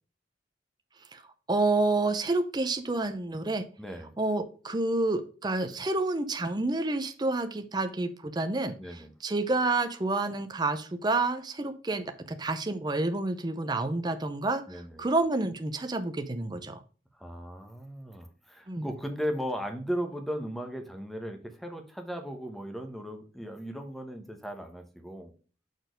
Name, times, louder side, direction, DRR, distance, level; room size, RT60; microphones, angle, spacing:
voice 1, 1.5-3.6 4.2-16.8 18.7-18.9, right 2 dB, 25° right, 8 dB, 0.6 m, -29 dB
voice 2, 3.8-4.1 8.8-9.1 14.7-15.0 17.2-25.3, equal, ahead, 5 dB, 1.0 m, -37 dB
6.2 x 4.4 x 5.1 m, 0.38 s
head